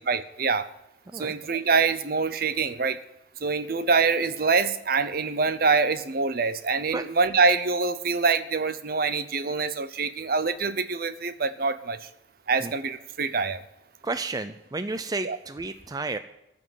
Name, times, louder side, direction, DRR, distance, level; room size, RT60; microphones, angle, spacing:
voice 1, 0.1-0.7 1.1-3.0 3.4-12.0 12.5-13.6 15.2-15.4, right 4 dB, 50° right, 12 dB, 0.8 m, -25 dB
voice 2, 14.0-16.2, right 3 dB, 20° right, 10 dB, 0.4 m, -31 dB
14.0 x 6.1 x 9.2 m, 0.86 s
head